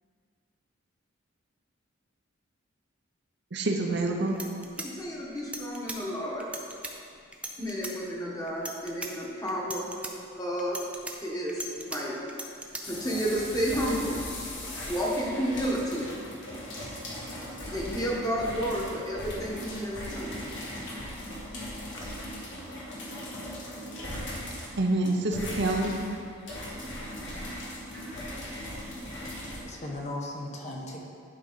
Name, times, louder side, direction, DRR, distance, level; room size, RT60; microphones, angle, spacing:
voice 1, 3.5-4.4 24.8-25.9, right 2 dB, 55° right, 2 dB, 0.7 m, -27 dB
sound 1, 3.9-4.0 4.3-6.0 6.4-6.9 7.3-7.9 8.5-9.1 9.5-10.1 10.6-12.0 12.3-12.8, right 2 dB, 5° right, 0.4 m, -38 dB
voice 2, 4.8-6.5 7.6-9.9 10.3-10.8 11.2-12.2 12.8-14.2 14.6-16.1 17.7-21.3 21.7-22.6 23.1-23.2, equal, 15° left, -4 dB, 1.2 m, -32 dB
sound 2, 12.8-29.6, left 1 dB, 60° left, 1.6 m, -39 dB
voice 3, 29.6-31.0, left 1 dB, 35° left, -1 dB, 0.9 m, -37 dB
11.0 x 5.0 x 3.9 m, 2.4 s
head